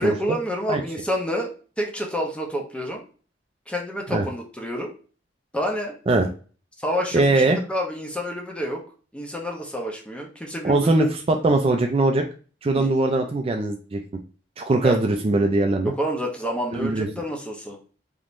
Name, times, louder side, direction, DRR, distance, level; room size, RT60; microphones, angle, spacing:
voice 1, 0.0-3.0 3.7-4.9 5.5-6.0 6.8-8.8 9.1-11.1 12.7-12.9 14.8-15.0 15.8-17.8, equal, 5° left, 1 dB, 0.7 m, -28 dB
voice 2, 7.1-7.6 10.6-12.2 12.6-14.0 14.6-15.9 16.7-17.1, right 2 dB, 30° right, 4 dB, 0.3 m, -21 dB
3.5 x 2.9 x 2.5 m, 0.38 s
head